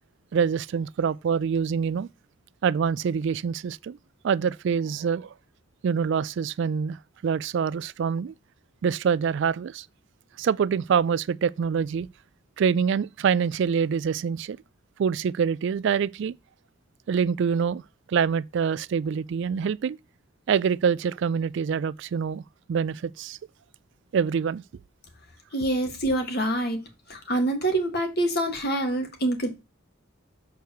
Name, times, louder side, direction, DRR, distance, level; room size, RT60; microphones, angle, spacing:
voice 1, 0.3-2.1 2.6-4.0 4.2-5.3 5.8-7.0 7.2-8.3 8.8-9.9 10.4-12.1 12.6-14.6 15.0-16.3 17.1-17.8 18.1-20.0 20.5-22.4 22.7-23.4 24.1-24.6, right 6 dB, 60° right, 0.3 m, -25 dB
voice 2, 25.5-26.8 27.1-29.5, right 1 dB, 50° left, 1.8 m, -26 dB
6.6 x 4.6 x 6.8 m
head